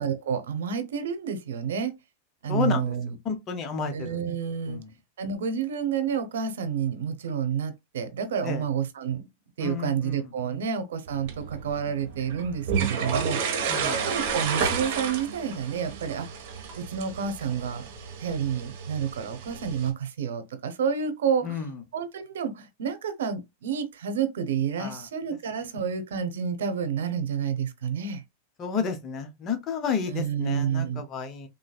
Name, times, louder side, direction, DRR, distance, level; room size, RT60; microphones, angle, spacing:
voice 1, 0.0-1.9 2.4-3.2 3.9-4.8 5.2-9.3 9.6-16.3 16.8-17.9 18.2-21.5 21.9-28.2 30.1-31.0, right 7 dB, 85° right, 0.8 m, -29 dB
voice 2, 2.5-2.9 3.2-4.2 4.7-4.9 8.4-8.6 9.6-10.6 13.7-14.1 21.4-21.7 24.8-25.0 28.6-31.5, left 6 dB, 30° left, 0.8 m, -31 dB
sound 1, 11.1-19.9, right 6 dB, 60° right, 1.2 m, -31 dB
3.7 x 2.5 x 2.3 m
supercardioid pair, 130°, 0 cm